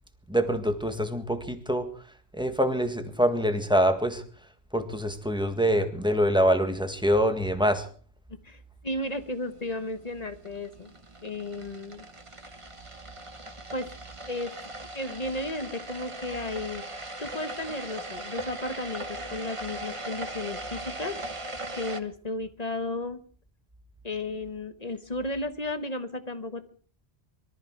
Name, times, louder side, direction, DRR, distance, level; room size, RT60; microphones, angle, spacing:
voice 1, 0.3-1.9 2.3-4.2 4.7-7.9, equal, 5° right, 7 dB, 1.6 m, -25 dB
voice 2, 8.3-10.9 11.2-12.1 13.7-13.9 14.3-14.6 14.9-16.8 17.2-21.2 21.7-23.2 24.0-26.7, left 2 dB, 40° left, 10 dB, 1.3 m, -34 dB
Electric Water Boiler, 9.0-22.0, right 1 dB, 30° right, 1.3 m, -40 dB
22.5 x 13.5 x 4.6 m, 0.43 s
omnidirectional pair, 1.1 m